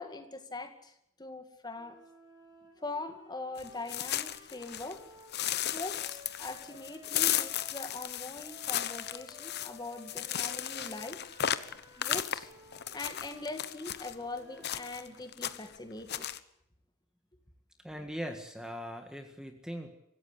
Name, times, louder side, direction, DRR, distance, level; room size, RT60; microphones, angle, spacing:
voice 1, 0.0-2.0 2.8-5.1 5.5-11.2 12.0-12.5 12.9-16.3, left 2 dB, 20° left, 7 dB, 2.2 m, -42 dB
sound 1, 1.7-7.8 8.4-15.0, right 1 dB, 20° right, 5.7 m, -56 dB
sound 2, 3.6-5.0 5.3-14.1 14.6-15.1 15.3-15.8 16.1-16.4, left 11 dB, 50° left, 1.0 m, -35 dB
voice 2, 17.8-19.9, equal, 5° right, 5 dB, 1.8 m, -40 dB
25.0 x 16.0 x 8.5 m, 0.79 s
head